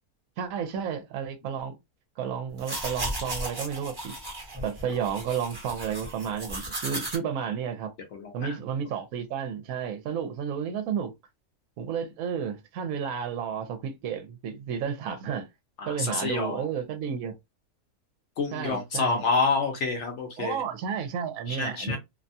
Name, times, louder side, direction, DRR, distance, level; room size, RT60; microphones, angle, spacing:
voice 1, 0.4-1.8 2.2-4.1 4.6-7.9 8.3-11.1 11.8-15.5 15.9-17.3 18.5-19.2 20.4-22.0, right 7 dB, 75° right, 1.0 m, -32 dB
sound 1, 2.5-7.2, right 1 dB, 20° right, 0.7 m, -35 dB
voice 2, 8.1-8.6 15.8-16.7 18.4-20.6 21.5-22.0, left 4 dB, 60° left, 0.9 m, -28 dB
2.7 x 2.2 x 2.6 m
omnidirectional pair, 1.5 m